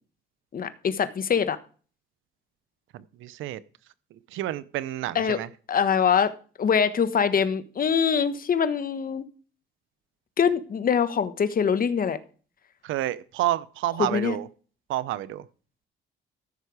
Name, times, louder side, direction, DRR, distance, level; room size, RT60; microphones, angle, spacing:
voice 1, 0.5-1.6 5.1-5.4 5.7-6.3 6.6-9.2 10.4-12.2 14.0-14.4, left 7 dB, 45° left, 1.2 m, -23 dB
voice 2, 2.9-3.6 4.3-5.5 12.8-14.5 14.9-15.4, right 14 dB, 85° right, 0.7 m, -29 dB
14.5 x 6.6 x 4.8 m
cardioid pair, 90°, 20 cm